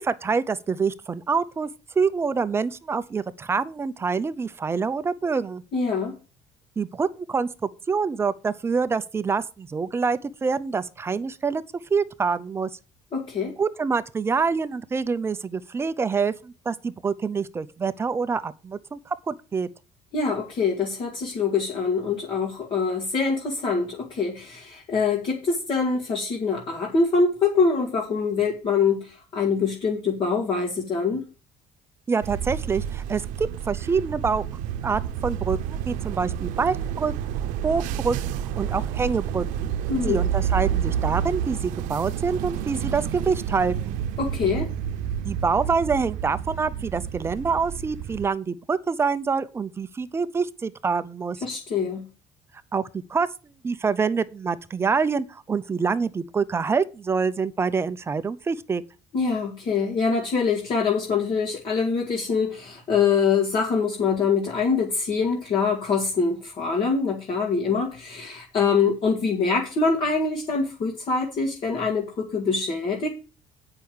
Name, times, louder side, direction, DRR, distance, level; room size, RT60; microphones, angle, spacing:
voice 1, 0.0-1.7 2.0-5.6 6.8-7.5 7.9-11.6 11.9-12.7 13.6-19.7 32.1-34.4 34.8-37.1 37.6-39.7 40.1-44.0 45.2-51.4 52.7-53.3 53.6-58.8, right 5 dB, 20° right, 0.6 m, -26 dB
voice 2, 5.7-6.1 13.1-13.5 20.1-31.2 39.9-40.2 44.2-44.7 51.4-52.0 59.1-73.1, left 5 dB, 40° left, 2.1 m, -24 dB
sound 1, 32.2-48.3, right 9 dB, 90° right, 0.7 m, -29 dB
8.9 x 5.8 x 6.4 m
cardioid pair, 155°, 13 cm